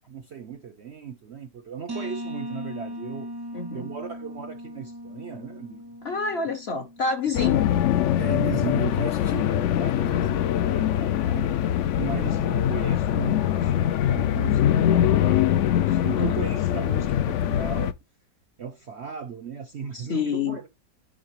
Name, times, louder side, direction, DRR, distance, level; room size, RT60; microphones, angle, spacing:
voice 1, 0.1-3.3 3.7-5.9 7.4-7.5 8.2-11.5 12.0-17.9 18.6-20.7, right 7 dB, 60° right, 0.7 m, -37 dB
sound 1, 1.9-7.5, equal, 30° right, 0.4 m, -38 dB
voice 2, 3.5-3.9 6.0-7.7 12.1-12.3 16.1-16.4 19.9-20.6, left 4 dB, 50° left, 0.8 m, -28 dB
sound 2, 7.3-17.9, left 11 dB, 85° left, 0.6 m, -23 dB
9.8 x 3.8 x 3.0 m
omnidirectional pair, 1.8 m